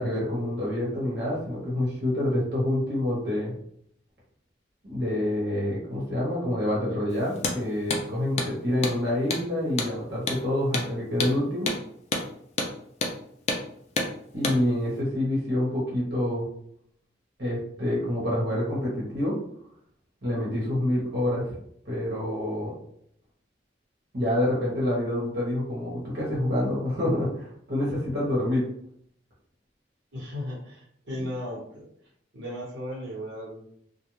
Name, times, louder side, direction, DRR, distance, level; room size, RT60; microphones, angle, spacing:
voice 1, 0.0-3.5 4.9-11.7 14.3-16.5 17.4-19.3 20.2-21.6 21.8-22.7 24.1-28.6 31.1-31.2, left 1 dB, 65° right, -7 dB, 1.1 m, -27 dB
Hammer, 7.3-7.6 7.9-8.0 8.4-8.5 8.8-9.0 9.3-9.4 9.8-9.9 10.3-10.4 10.7-10.9 11.2-11.3 11.7-11.8 12.1-12.3 12.6-12.7 13.0-13.2 13.5-13.6 14.0-14.1 14.4-14.6, left 3 dB, 35° left, 0.4 m, -28 dB
voice 2, 30.1-31.9 32.3-33.7, equal, 90° right, -5 dB, 1.2 m, -36 dB
2.3 x 2.2 x 3.0 m, 0.68 s
head